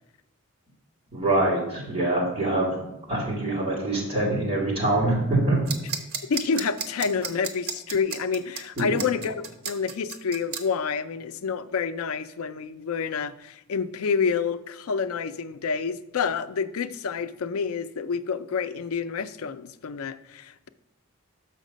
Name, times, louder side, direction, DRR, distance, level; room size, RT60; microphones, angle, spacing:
voice 1, 1.1-2.8 3.1-5.6 8.8-9.0, right 2 dB, 25° right, -5 dB, 2.6 m, -24 dB
sound 1, 5.7-10.6, right 6 dB, 90° right, 0.8 m, -32 dB
voice 2, 6.3-20.7, left 5 dB, 90° left, 12 dB, 0.4 m, -28 dB
6.4 x 5.8 x 5.1 m, 0.91 s
head